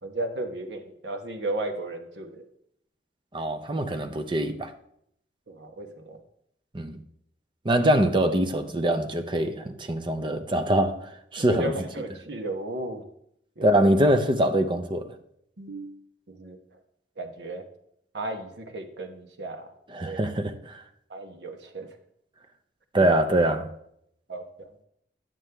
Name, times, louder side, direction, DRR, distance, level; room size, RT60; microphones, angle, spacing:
voice 1, 0.0-2.4 5.5-6.2 11.5-13.0 13.6-14.0 15.6-16.0 16.3-16.6 17.2-17.6 18.1-19.7 20.0-20.2 21.1-22.0 22.9-23.1 24.3-24.7, right 1 dB, 70° right, 1.1 m, -34 dB
voice 2, 3.3-4.7 6.7-7.0 7.6-11.7 13.6-15.1 19.9-20.8 22.9-23.7, right 1 dB, 30° right, 0.7 m, -24 dB
9.3 x 7.4 x 3.4 m
head